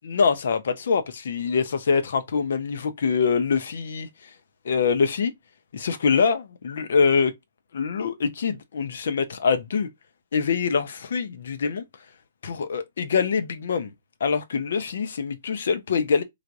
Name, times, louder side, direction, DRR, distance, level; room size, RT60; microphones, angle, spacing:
voice 1, 0.0-4.1 4.6-5.3 5.7-7.3 7.7-9.9 10.3-11.8 12.4-13.9 14.2-16.2, left 5 dB, 65° left, 0.6 m, -24 dB
3.3 x 2.4 x 2.5 m
hypercardioid pair, 130°, 0 cm